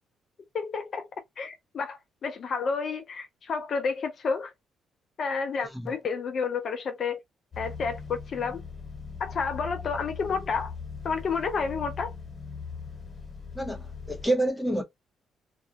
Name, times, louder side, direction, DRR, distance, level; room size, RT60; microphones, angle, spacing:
voice 1, 0.5-1.1 1.4-4.5 5.2-7.2 7.6-8.6 9.2-10.7 11.0-12.1, left 5 dB, 55° left, 0.6 m, -30 dB
sound 1, 7.5-14.3, left 5 dB, 25° left, 1.3 m, -40 dB
voice 2, 13.5-14.8, right 1 dB, ahead, 0.8 m, -28 dB
2.5 x 2.1 x 2.8 m
cardioid pair, 90°, 0 cm